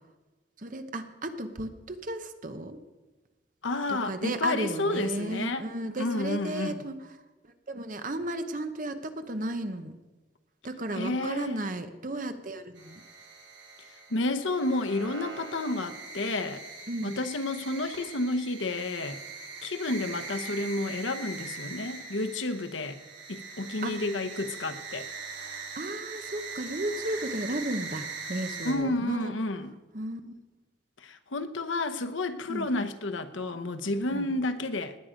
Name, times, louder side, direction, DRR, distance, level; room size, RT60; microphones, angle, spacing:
voice 1, 0.6-2.8 3.9-7.0 7.7-10.0 10.6-13.0 16.9-17.1 23.8-24.0 25.7-29.3 29.9-30.3 32.5-32.7 34.1-34.3, right 1 dB, 45° right, 1.0 m, -34 dB
voice 2, 3.6-5.7 6.0-6.8 10.9-11.6 14.1-16.6 17.0-19.2 19.6-23.0 23.3-25.1 28.6-29.7 31.0-35.0, left 2 dB, 85° left, 1.0 m, -31 dB
sound 1, 12.8-28.7, right 4 dB, 75° right, 3.3 m, -41 dB
19.0 x 8.7 x 5.1 m
head